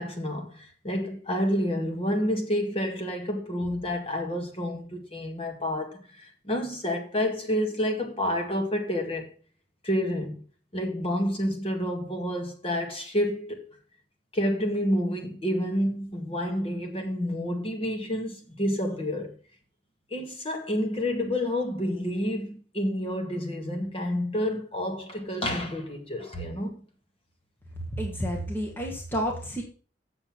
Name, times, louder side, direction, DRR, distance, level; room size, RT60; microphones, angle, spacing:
voice 1, 0.0-9.3 9.8-10.4 10.7-13.6 14.3-19.3 20.1-26.7, equal, 35° left, 1.9 m, -29 dB
voice 2, 27.9-29.6, equal, 10° left, 1.5 m, -30 dB
7.8 x 7.0 x 6.0 m
head